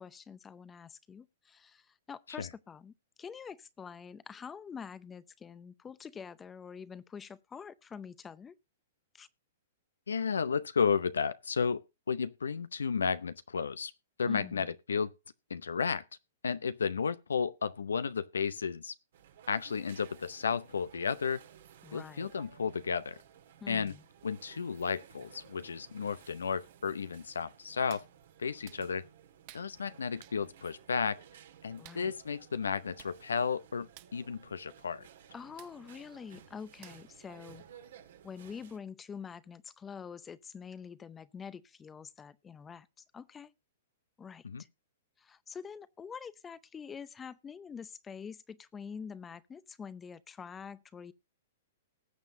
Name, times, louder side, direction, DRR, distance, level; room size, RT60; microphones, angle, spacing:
voice 1, 0.0-2.9 3.2-8.6 9.1-9.3 14.3-14.7 21.8-22.3 23.6-24.0 31.8-32.1 35.3-37.6 38.2-43.5 44.2-44.7 45.2-51.1, left 6 dB, 15° left, 0.6 m, -46 dB
voice 2, 10.1-13.9 14.2-15.1 15.5-16.0 16.4-18.9 19.5-21.4 21.9-23.2 23.7-23.9 24.2-28.0 28.4-29.1 29.5-31.2 31.6-35.1 44.4-44.6, left 6 dB, 85° left, 0.6 m, -33 dB
sound 1, 19.1-38.8, right 9 dB, 70° right, 1.7 m, -57 dB
Hands, 27.9-28.1 28.6-28.8 29.5-29.7 30.2-30.4 31.8-32.0 32.7-32.8 33.0-33.2 33.4-33.6 33.9-34.1 35.6-35.7 36.8-37.2 37.6-37.7, right 19 dB, 45° right, 0.6 m, -54 dB
19.5 x 7.2 x 2.6 m
hypercardioid pair, 125°, 0 cm